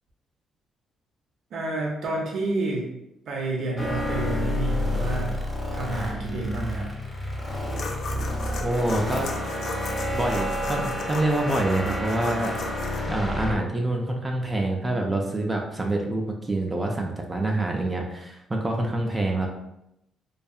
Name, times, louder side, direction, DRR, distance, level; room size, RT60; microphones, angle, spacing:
voice 1, 1.5-2.9 3.3-5.4 5.7-6.9, right 2 dB, 70° right, -1 dB, 0.6 m, -29 dB
sound 1, 3.8-13.6, left 1 dB, 10° left, 0.8 m, -29 dB
sound 2, 7.7-13.0, left 3 dB, 65° left, 0.4 m, -36 dB
voice 2, 8.6-9.3 10.1-12.7 13.1-19.5, right 2 dB, 20° right, 1 dB, 0.4 m, -26 dB
2.7 x 2.3 x 2.3 m, 0.84 s
cardioid pair, 90°, 0 cm